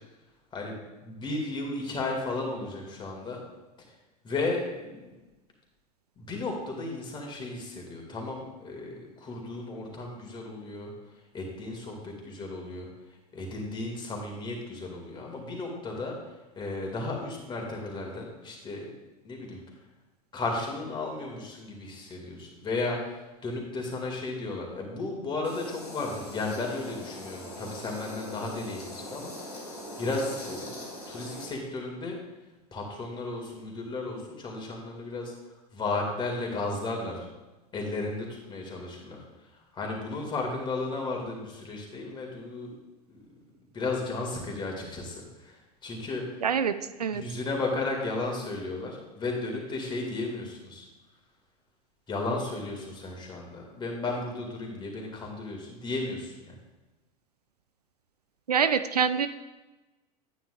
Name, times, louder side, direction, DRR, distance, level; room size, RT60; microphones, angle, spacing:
voice 1, 0.5-3.4 4.2-5.1 6.2-10.9 11.3-12.9 13.3-16.1 16.6-18.9 19.2-19.6 20.3-29.7 30.0-30.7 31.1-32.2 32.7-35.3 35.7-37.2 37.7-39.2 39.7-42.7 43.1-43.2 43.7-45.6 45.8-46.2 47.1-50.9 52.1-56.5, left 3 dB, 25° left, 0 dB, 2.2 m, -34 dB
sound 1, 25.4-31.4, left 1 dB, 80° left, 2.8 m, -41 dB
voice 2, 46.4-46.7 47.0-47.2 58.5-59.3, right 7 dB, 80° right, 11 dB, 0.4 m, -25 dB
9.4 x 9.1 x 2.4 m, 1.1 s
figure-of-eight pair, 80°, 20 cm